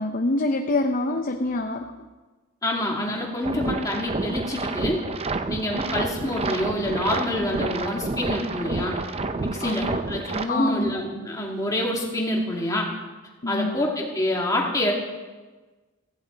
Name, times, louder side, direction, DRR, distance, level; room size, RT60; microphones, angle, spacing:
voice 1, 0.0-1.9 9.6-10.0 10.5-11.0 13.4-13.8, left 2 dB, 40° left, 5 dB, 0.7 m, -26 dB
voice 2, 2.6-5.0 5.5-9.0 9.3-12.9 13.5-14.9, left 1 dB, 15° left, -2 dB, 2.6 m, -27 dB
sound 1, 3.4-10.5, right 3 dB, 30° right, 0.6 m, -29 dB
16.5 x 15.0 x 4.0 m, 1.2 s
head